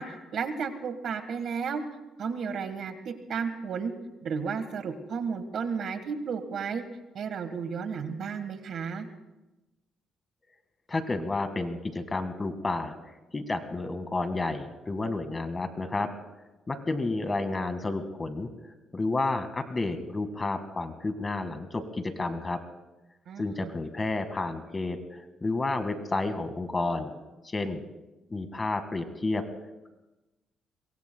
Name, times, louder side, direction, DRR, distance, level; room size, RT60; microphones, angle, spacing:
voice 1, 0.0-1.8 2.2-3.9 4.2-6.8 7.1-9.1 23.3-23.7, right 6 dB, 65° right, 9 dB, 1.5 m, -33 dB
voice 2, 10.9-12.9 13.3-16.1 16.7-22.6 23.4-27.1 27.4-27.9 28.3-29.4, left 2 dB, 25° left, 8 dB, 1.8 m, -31 dB
26.5 x 23.0 x 2.3 m, 1.0 s
cardioid pair, 90°, 0 cm